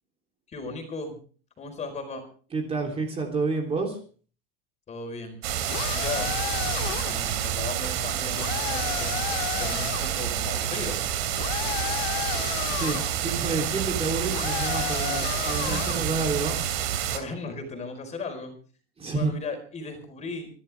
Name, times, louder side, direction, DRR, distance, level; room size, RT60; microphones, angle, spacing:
voice 1, 0.5-1.2 1.6-2.2 4.9-5.4 5.9-6.3 6.8-9.2 9.4-11.0 15.7-15.9 17.1-18.5 19.1-20.5, left 3 dB, 20° left, 5 dB, 4.4 m, -36 dB
voice 2, 2.5-4.0 12.7-16.6 19.0-19.3, right 3 dB, 20° right, 2 dB, 3.4 m, -29 dB
sound 1, 5.4-17.2, right 10 dB, 80° right, 3.2 m, -28 dB
sound 2, 5.7-7.3 8.3-10.1 11.3-13.2 14.3-16.1, left 14 dB, 85° left, 2.2 m, -33 dB
26.5 x 12.0 x 3.5 m, 0.41 s
supercardioid pair, 155°, 30 cm